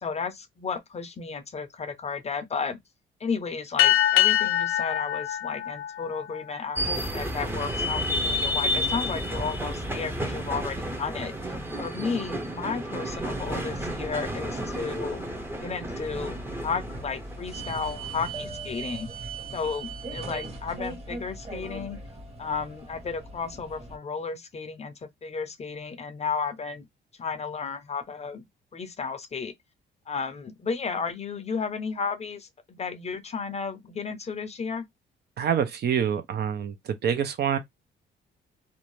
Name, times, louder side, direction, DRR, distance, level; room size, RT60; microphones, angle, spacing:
voice 1, 0.0-2.8 3.2-15.2 15.6-19.1 19.5-22.0 22.4-26.9 27.2-28.5 28.7-29.5 30.1-34.9, left 5 dB, 35° left, 0.5 m, -33 dB
sound 1, 3.8-6.7, left 13 dB, 90° left, 0.5 m, -24 dB
sound 2, 6.8-18.3, equal, 10° right, 0.6 m, -31 dB
sound 3, 13.0-24.0, right 2 dB, 30° right, 1.1 m, -40 dB
voice 2, 35.4-37.6, right 8 dB, 55° right, 0.5 m, -26 dB
2.6 x 2.1 x 3.1 m
cardioid pair, 90°, 20 cm